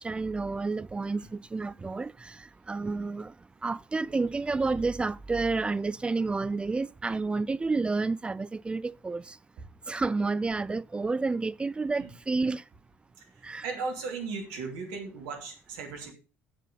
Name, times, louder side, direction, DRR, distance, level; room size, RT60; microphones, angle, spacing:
voice 1, 0.0-3.3 3.6-9.4 9.9-12.6 13.4-13.7, right 3 dB, 15° right, 0.4 m, -30 dB
voice 2, 13.6-16.1, right 4 dB, 60° right, 2.9 m, -36 dB
8.1 x 7.4 x 5.4 m
figure-of-eight pair, 55°, 7 cm